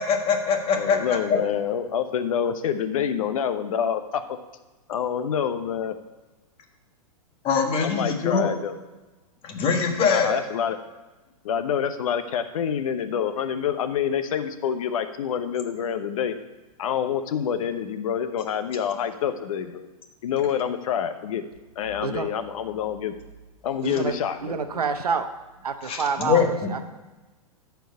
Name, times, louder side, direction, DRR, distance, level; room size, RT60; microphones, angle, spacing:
voice 1, 0.0-1.4 7.4-8.5 9.4-10.4 25.8-26.7, left 5 dB, 30° left, 3 dB, 1.5 m, -23 dB
voice 2, 0.8-4.2 4.9-5.9 7.8-8.8 10.0-10.8 11.4-16.3 16.8-19.9 20.2-21.4 21.8-23.1 23.6-24.6, left 8 dB, 65° left, 10 dB, 0.9 m, -27 dB
voice 3, 23.8-24.2 24.4-25.3 25.6-26.8, right 5 dB, 90° right, 9 dB, 0.9 m, -27 dB
14.0 x 4.7 x 5.4 m, 1.2 s
hypercardioid pair, 120°, 19 cm